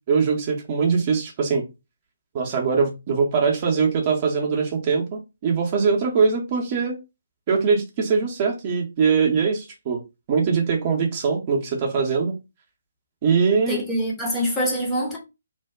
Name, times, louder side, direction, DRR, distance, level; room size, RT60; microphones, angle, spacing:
voice 1, 0.1-1.6 2.3-7.0 7.5-10.0 10.3-12.3 13.2-13.8, right 5 dB, 30° right, 0.7 m, -22 dB
voice 2, 13.7-15.2, equal, 10° left, 0.7 m, -24 dB
2.6 x 2.1 x 3.4 m
figure-of-eight pair, 135°, 0 cm